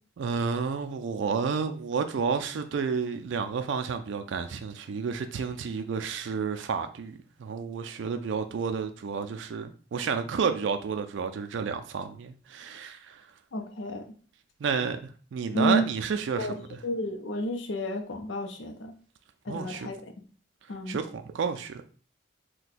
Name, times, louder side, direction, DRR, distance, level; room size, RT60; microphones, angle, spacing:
voice 1, 0.2-13.2 14.6-16.5 19.5-19.9 20.9-21.8, right 5 dB, 70° right, 0.3 m, -31 dB
voice 2, 13.5-14.0 15.5-15.9 16.4-18.9 19.4-20.0 20.7-21.0, equal, 75° left, 0.6 m, -31 dB
2.6 x 2.2 x 4.0 m
head